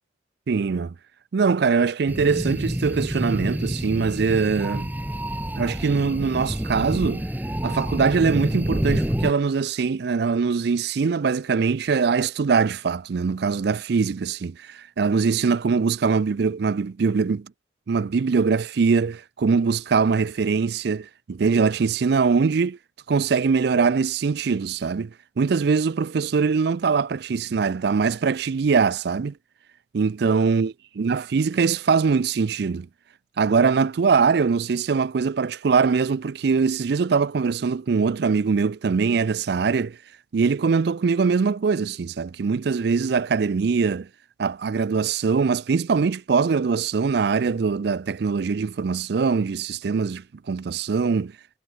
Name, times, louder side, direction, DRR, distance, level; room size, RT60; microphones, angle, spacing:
voice 1, 0.5-0.9 1.3-4.9 5.6-7.2 7.6-17.5 17.9-22.8 23.1-29.3 29.9-32.9 33.4-40.0 40.3-44.1 44.4-51.3, right 5 dB, 60° right, 0.4 m, -22 dB
sound 1, 2.1-9.3, equal, 10° right, 1.0 m, -28 dB
head